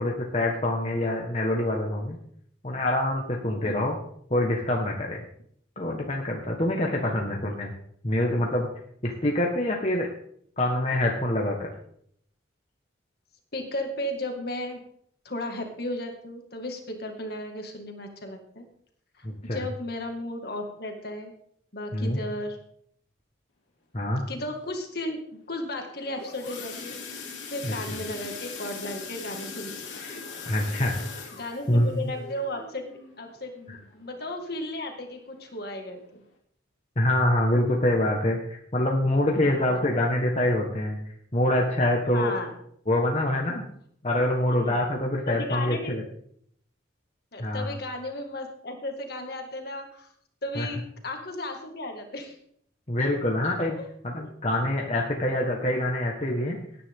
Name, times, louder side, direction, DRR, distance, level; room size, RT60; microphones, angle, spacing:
voice 1, 0.0-2.2 2.6-4.0 4.3-5.2 5.8-7.7 8.0-8.7 9.0-10.1 10.6-11.7 19.2-19.6 21.9-22.2 23.9-24.3 27.6-27.7 30.4-31.0 31.7-32.1 33.7-33.8 37.0-41.0 41.3-42.3 42.9-43.6 44.0-46.0 47.4-47.7 50.5-50.7 52.9-53.8 54.0-56.6, left 1 dB, 35° left, -1 dB, 1.5 m, -25 dB
voice 2, 6.9-7.7 13.5-14.8 15.2-18.6 19.2-21.3 21.7-22.6 24.3-25.2 25.5-27.0 27.5-29.8 31.3-32.9 33.2-36.2 39.5-39.9 42.1-42.5 44.5-44.8 45.3-45.9 47.3-50.1 50.4-52.4 54.2-54.3, left 1 dB, 50° left, 3 dB, 2.2 m, -35 dB
sound 1, 25.8-34.5 34.9-35.2 35.5-35.6 36.1-36.2, left 5 dB, 70° left, 3.1 m, -41 dB
17.0 x 10.0 x 3.8 m, 0.66 s
head